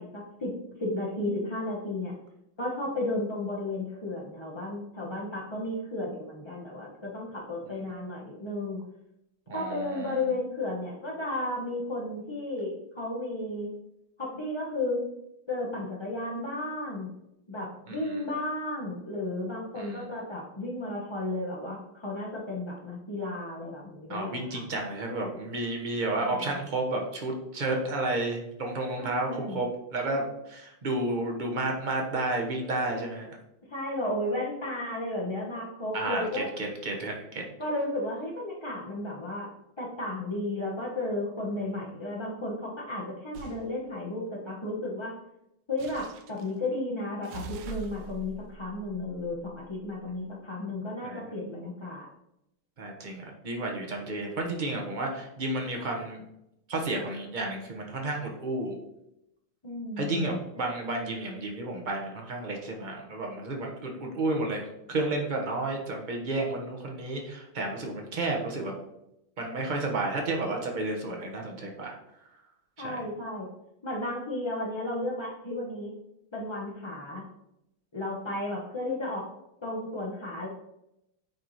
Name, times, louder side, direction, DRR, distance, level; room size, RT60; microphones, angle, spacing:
voice 1, 0.0-2.1 2.6-8.8 9.5-13.7 14.2-15.1 15.5-17.1 17.5-24.6 26.2-26.3 29.0-29.6 33.7-36.5 37.6-39.5 39.8-45.1 45.7-52.1 59.6-60.4 72.8-73.5 73.8-75.9 76.3-77.2 77.9-79.3 79.6-80.5, left 2 dB, 40° left, -5 dB, 0.4 m, -33 dB
voice 2, 9.5-10.4 17.9-18.2 19.8-20.1 24.1-33.3 35.9-37.4 50.1-50.4 51.0-51.2 52.8-56.2 56.7-58.8 60.0-68.7 69.4-72.0 72.8-73.0, right 2 dB, 35° right, 1 dB, 0.7 m, -32 dB
sound 1, 43.3-43.6 45.8-46.5 47.2-49.9, right 5 dB, 85° right, 1.6 m, -43 dB
9.3 x 3.1 x 4.0 m, 0.84 s
omnidirectional pair, 2.3 m